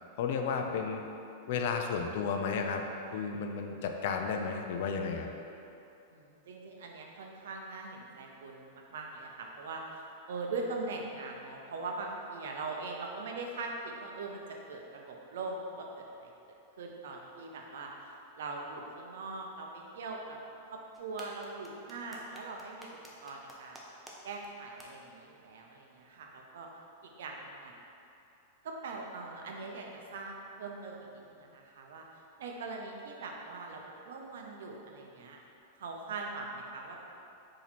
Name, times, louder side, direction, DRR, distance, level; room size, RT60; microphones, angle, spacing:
voice 1, 0.2-1.0 1.5-2.8 3.1-5.3, left 5 dB, 65° left, 4 dB, 0.4 m, -33 dB
voice 2, 6.1-16.3 16.8-20.4 20.7-23.8 24.2-26.7 27.0-27.7 28.6-32.1 32.4-35.4 35.8-37.0, right 3 dB, 75° right, 1 dB, 0.6 m, -41 dB
sound 1, 20.9-24.1 24.4-24.5 24.8-24.9, equal, 5° right, 0.6 m, -50 dB
4.1 x 2.8 x 4.2 m, 2.8 s
hypercardioid pair, 110°, 0 cm